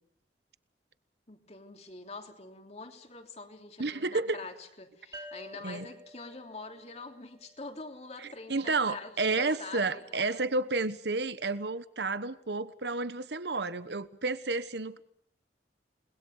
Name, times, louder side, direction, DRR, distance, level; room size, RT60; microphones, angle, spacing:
voice 1, 1.3-10.2, left 3 dB, 35° left, 3.2 m, -45 dB
voice 2, 3.8-4.4 5.6-5.9 8.2-15.1, right 3 dB, 65° right, 1.2 m, -31 dB
sound 1, 5.1-8.6, equal, 20° right, 4.0 m, -51 dB
30.0 x 21.0 x 6.6 m
head